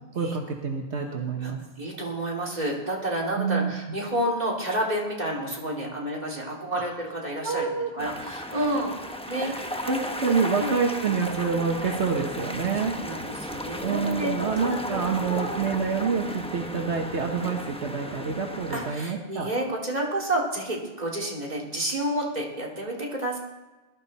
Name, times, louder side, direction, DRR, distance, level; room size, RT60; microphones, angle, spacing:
voice 1, 0.1-1.6 3.4-3.7 6.7-6.9 7.4-7.9 9.4-13.0 13.8-19.5, right 5 dB, 70° right, 2 dB, 1.5 m, -27 dB
voice 2, 1.4-7.7 7.9-9.5 10.5-10.7 12.5-15.6 18.7-23.4, right 1 dB, 35° right, -2 dB, 3.0 m, -30 dB
sound 1, 8.0-18.9, equal, 5° left, 0.9 m, -35 dB
20.5 x 12.5 x 4.2 m, 1.2 s
omnidirectional pair, 1.2 m